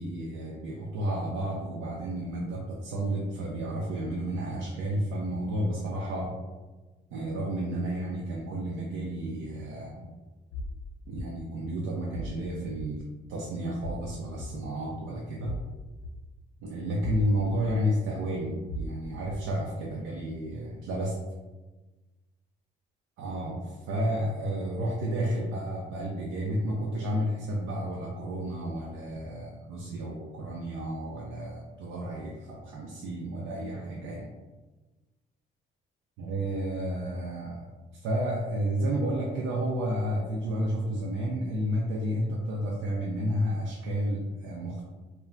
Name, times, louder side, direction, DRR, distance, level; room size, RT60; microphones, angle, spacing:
voice 1, 0.0-6.4 7.1-10.1 11.1-13.0 13.3-15.6 16.6-21.2 23.2-34.3 36.2-44.8, right 1 dB, 90° right, -2 dB, 0.4 m, -31 dB
sound 1, 10.5-10.8 11.2-11.3 12.1-12.4 12.8-12.9 13.8-14.0 14.4-14.5 15.4-15.7 16.0-16.1 17.0-17.3 17.7-17.8 18.7-18.9 19.3-19.4, equal, 75° left, 0.5 m, -36 dB
2.2 x 2.2 x 3.7 m, 1.2 s
cardioid pair, 90°, 20 cm